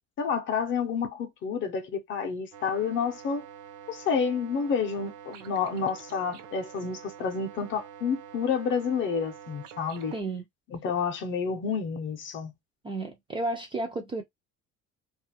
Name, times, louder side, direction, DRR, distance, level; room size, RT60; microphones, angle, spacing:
voice 1, 0.2-3.4 3.9-10.1 10.7-12.5, left 6 dB, 40° left, 0.6 m, -29 dB
sound 1, 2.5-10.2, right 9 dB, 70° right, 0.7 m, -47 dB
voice 2, 10.1-10.5 12.8-14.2, right 2 dB, 15° right, 0.3 m, -32 dB
2.5 x 2.4 x 2.7 m
cardioid pair, 170°, 31 cm